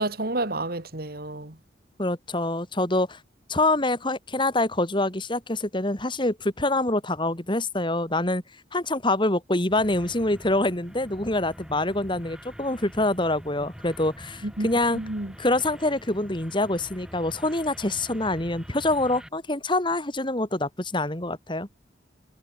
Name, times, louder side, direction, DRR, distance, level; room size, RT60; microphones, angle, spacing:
voice 1, 0.0-1.6 14.4-14.7 14.9-15.3, right 2 dB, 55° right, 2.2 m, -30 dB
voice 2, 2.0-3.2 3.5-8.4 8.7-15.0 15.4-21.7, left 2 dB, 25° left, 3.0 m, -25 dB
sound 1, 9.7-19.3, equal, 5° right, 3.5 m, -45 dB
head